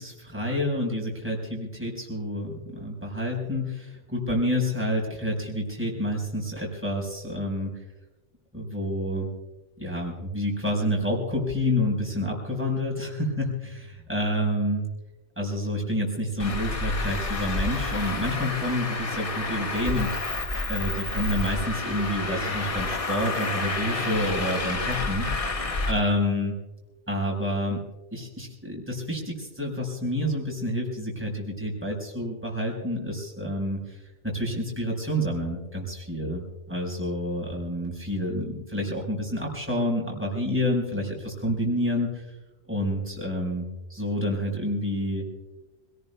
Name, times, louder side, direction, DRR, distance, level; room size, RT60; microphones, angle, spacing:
voice 1, 0.0-7.7 8.5-9.3 9.8-14.9 15.4-20.2 20.7-25.3 25.9-26.5 27.1-27.8 28.1-34.0 34.2-42.2 42.7-45.3, left 1 dB, 10° right, -2 dB, 4.9 m, -28 dB
Traffic noise roadway noise, 16.4-25.9, left 3 dB, 30° left, 0.9 m, -29 dB
27.0 x 18.0 x 2.3 m, 1.1 s
omnidirectional pair, 1.3 m